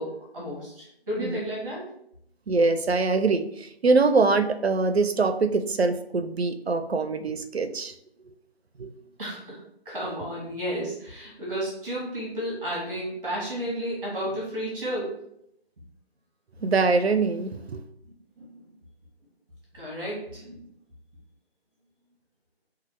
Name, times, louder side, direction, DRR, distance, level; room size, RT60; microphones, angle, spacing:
voice 1, 0.0-1.9 9.2-9.6 9.8-15.2 18.4-18.5 19.7-20.6, equal, 30° right, -5 dB, 1.1 m, -32 dB
voice 2, 2.5-7.9 8.3-8.4 8.8-8.9 16.6-17.8, right 3 dB, 75° right, 9 dB, 0.5 m, -23 dB
5.3 x 2.4 x 3.0 m, 0.74 s
figure-of-eight pair, 155°, 32 cm